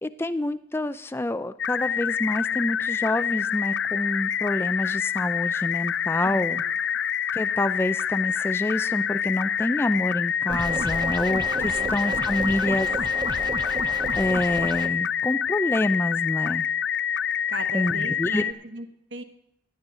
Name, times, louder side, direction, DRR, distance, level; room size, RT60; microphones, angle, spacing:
voice 1, 0.0-6.6 7.3-12.9 14.2-16.7 17.7-18.4, left 1 dB, 15° left, 12 dB, 0.4 m, -27 dB
sound 1, 1.6-18.5, left 8 dB, 75° left, 0.5 m, -27 dB
voice 2, 6.2-6.6 11.7-12.2 12.4-12.6 17.5-19.2, right 3 dB, 90° right, 7 dB, 1.3 m, -38 dB
sound 2, 10.5-14.9, right 2 dB, 25° right, 0.6 m, -32 dB
16.0 x 10.5 x 3.8 m, 0.75 s
head